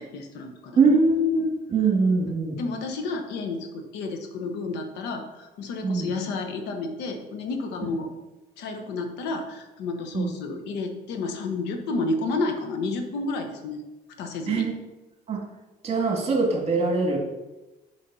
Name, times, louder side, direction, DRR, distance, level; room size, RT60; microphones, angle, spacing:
voice 1, 0.0-0.8 2.5-8.1 8.6-13.8 14.2-14.7, left 3 dB, 90° left, 5 dB, 1.1 m, -31 dB
voice 2, 0.8-2.6 5.8-6.1 10.1-10.3 14.5-14.7 15.3-15.4 15.8-17.2, right 3 dB, 35° right, 1 dB, 2.0 m, -22 dB
6.4 x 5.3 x 5.5 m, 1.1 s
cardioid pair, 110°, 17 cm